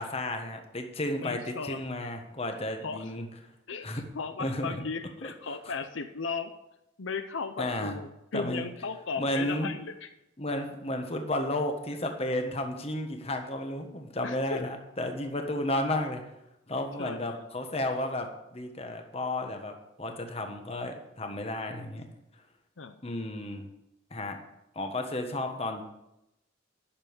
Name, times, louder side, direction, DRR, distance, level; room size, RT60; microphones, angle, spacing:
voice 1, 0.0-3.2 3.8-4.0 4.4-4.7 7.6-7.9 8.3-8.6 9.2-9.7 10.4-16.2 16.7-19.7 20.0-22.0 23.0-23.7 24.1-24.4 24.7-25.8, left 1 dB, 30° left, 5 dB, 1.4 m, -32 dB
voice 2, 1.2-2.1 2.8-3.1 3.7-6.6 7.0-10.1 14.2-14.6 17.0-17.5 22.8-23.0, left 4 dB, 75° left, 8 dB, 0.7 m, -36 dB
10.0 x 7.1 x 8.9 m, 0.88 s
head